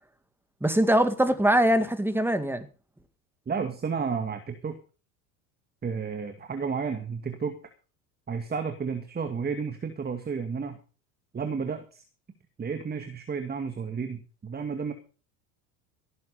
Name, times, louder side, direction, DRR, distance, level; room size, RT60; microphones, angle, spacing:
voice 1, 0.6-2.7, right 1 dB, 5° right, 10 dB, 2.1 m, -22 dB
voice 2, 3.5-4.7 5.8-7.6 8.3-10.8 11.3-12.0 12.6-14.9, right 5 dB, 20° right, 7 dB, 2.1 m, -32 dB
17.5 x 9.7 x 5.2 m, 0.36 s
hypercardioid pair, 80°, 47 cm